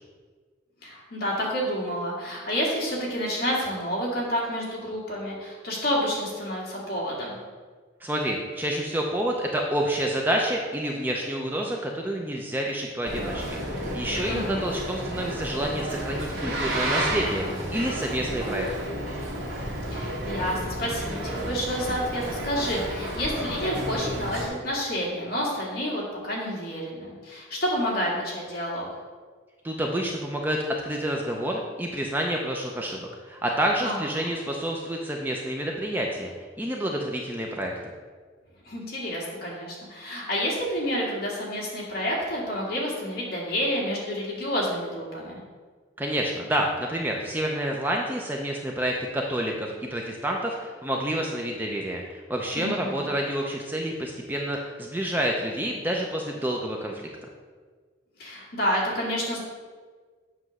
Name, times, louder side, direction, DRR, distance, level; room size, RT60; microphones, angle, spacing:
voice 1, 0.8-7.3 14.3-14.7 19.9-28.9 33.8-34.3 38.7-45.4 52.6-53.1 58.2-59.4, equal, 50° left, -4 dB, 1.8 m, -29 dB
voice 2, 8.0-18.7 29.6-36.3 36.6-37.7 46.0-57.1, right 1 dB, 10° right, 0 dB, 0.4 m, -28 dB
Boat Water vehicle, 13.0-24.5, right 1 dB, 75° right, 2.0 m, -31 dB
7.7 x 3.1 x 6.0 m, 1.5 s
head